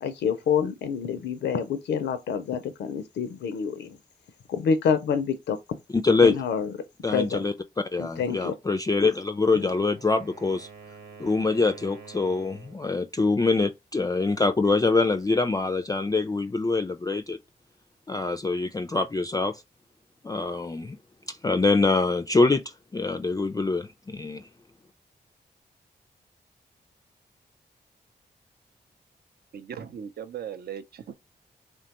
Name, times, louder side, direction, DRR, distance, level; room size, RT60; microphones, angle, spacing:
voice 1, 0.0-4.0 4.5-5.6 6.2-6.7 7.1-7.5 8.0-8.5 9.5-9.6, left 6 dB, 80° left, 0.4 m, -27 dB
voice 2, 6.0-6.4 7.0-7.5 7.9-10.7 11.2-17.4 18.1-19.6 20.2-21.0 21.3-22.6 22.9-24.5, left 3 dB, 20° left, 0.3 m, -24 dB
Wind instrument woodwind instrument, 9.3-12.9, right 5 dB, 80° right, 1.1 m, -48 dB
voice 3, 29.5-31.1, right 8 dB, 65° right, 0.5 m, -38 dB
3.2 x 2.1 x 2.8 m
supercardioid pair, 45°, 18 cm